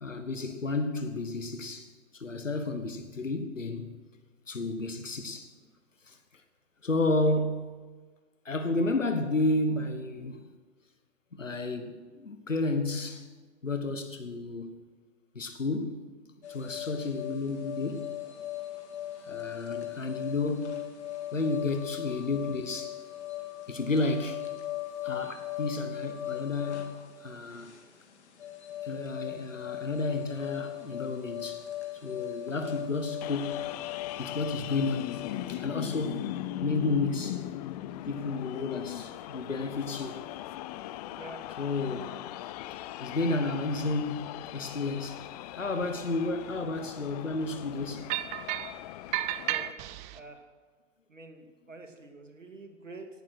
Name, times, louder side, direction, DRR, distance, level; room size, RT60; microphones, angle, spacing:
voice 1, 0.0-4.0 4.5-5.5 6.0-6.2 6.8-7.7 8.4-10.5 11.3-13.3 13.6-14.8 15.3-16.1 16.5-18.1 19.2-21.0 21.3-23.0 23.7-24.5 25.0-27.7 28.8-31.7 32.0-33.7 34.2-35.2 35.5-36.3 36.6-37.5 38.0-40.3 41.6-42.1 43.0-48.2, left 2 dB, 85° left, 1.5 m, -32 dB
sound 1, 16.4-35.3, left 13 dB, 60° left, 2.6 m, -39 dB
sound 2, 33.2-49.7, left 14 dB, 35° left, 0.6 m, -39 dB
voice 2, 41.1-41.4 49.5-49.7 50.1-50.5 51.1-53.1, right 2 dB, 80° right, 2.4 m, -47 dB
sound 3, 48.1-48.8 49.1-50.2, right 15 dB, 20° right, 0.5 m, -32 dB
18.0 x 12.0 x 6.3 m
figure-of-eight pair, 105°, 37 cm